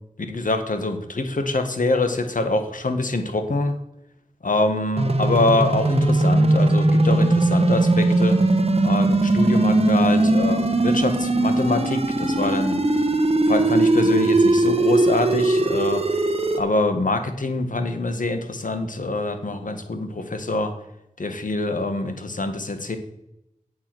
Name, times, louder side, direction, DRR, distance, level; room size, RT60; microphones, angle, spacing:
voice 1, 0.3-3.8 4.4-8.4 8.8-12.8 13.5-16.0 16.5-20.7 21.2-23.0, left 2 dB, 70° left, 7 dB, 1.5 m, -25 dB
sound 1, 5.0-16.6, right 2 dB, 45° right, 1.3 m, -19 dB
8.3 x 7.7 x 6.1 m, 0.82 s
cardioid pair, 45°, 14 cm